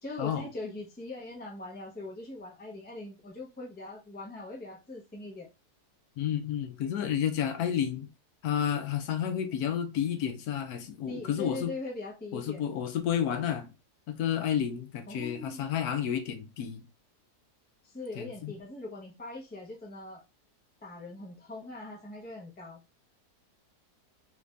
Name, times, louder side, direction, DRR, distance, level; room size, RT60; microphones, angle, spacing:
voice 1, 0.0-5.5 11.1-12.7 15.1-15.7 17.8-20.2 20.8-23.0, left 2 dB, 10° left, 0.5 m, -41 dB
voice 2, 6.2-8.1 8.4-11.7 12.3-13.7 14.1-16.9 18.2-18.5, left 9 dB, 75° left, 1.1 m, -31 dB
3.2 x 2.5 x 3.2 m
omnidirectional pair, 1.7 m